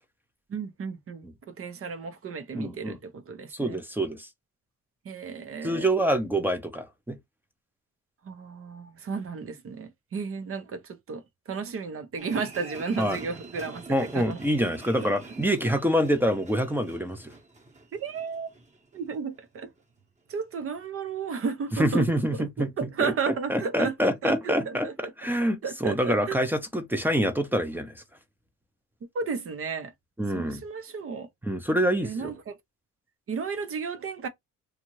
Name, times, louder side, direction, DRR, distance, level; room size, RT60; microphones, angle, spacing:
voice 1, 0.5-3.8 5.0-5.9 8.2-14.4 15.0-15.1 17.9-18.5 18.9-19.7 20.3-22.1 22.3-25.1 25.4-26.4 29.1-29.9 30.3-31.3 32.0-32.5 33.3-34.3, right 5 dB, 45° right, 0.8 m, -33 dB
voice 2, 2.5-3.0 3.5-4.3 5.6-7.2 13.0-13.2 13.9-17.3 21.8-23.1 23.5-28.0 30.2-30.6 31.4-32.3, equal, 5° right, 0.6 m, -26 dB
sound 1, 12.2-19.5 19.8-19.9, right 2 dB, 25° right, 1.1 m, -46 dB
2.7 x 2.4 x 3.0 m
cardioid pair, 90°, 30 cm